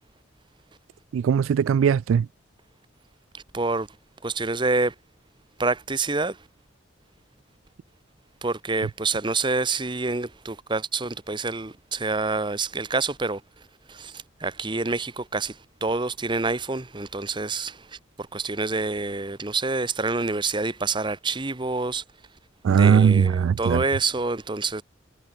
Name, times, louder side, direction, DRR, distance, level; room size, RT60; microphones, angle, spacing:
voice 1, 1.1-2.3 22.6-23.8, right 7 dB, 85° right, 0.3 m, -19 dB
voice 2, 3.3-3.9 4.2-4.9 5.6-6.4 8.4-13.4 13.9-22.0 22.7-24.8, right 3 dB, 25° right, 1.0 m, -27 dB
head